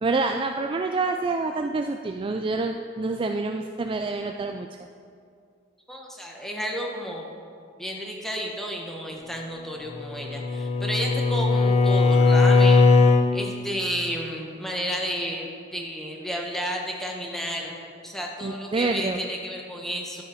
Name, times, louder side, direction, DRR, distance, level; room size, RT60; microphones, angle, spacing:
voice 1, 0.0-4.7 18.4-19.2, right 3 dB, 25° right, 5 dB, 0.3 m, -27 dB
voice 2, 5.9-7.3 7.8-12.9 13.3-20.2, equal, ahead, -1 dB, 1.2 m, -32 dB
Bowed string instrument, 9.9-13.3, left 3 dB, 30° left, 0.7 m, -18 dB
12.5 x 7.5 x 5.0 m, 2.3 s
head